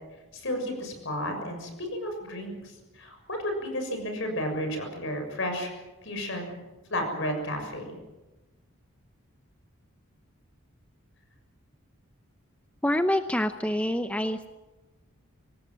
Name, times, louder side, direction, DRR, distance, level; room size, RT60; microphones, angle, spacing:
voice 1, 0.3-5.7 6.0-6.6 6.9-7.9, equal, 60° left, 5 dB, 6.8 m, -32 dB
voice 2, 12.8-14.5, left 1 dB, 5° left, 8 dB, 0.7 m, -26 dB
25.5 x 19.0 x 7.7 m, 1.1 s
head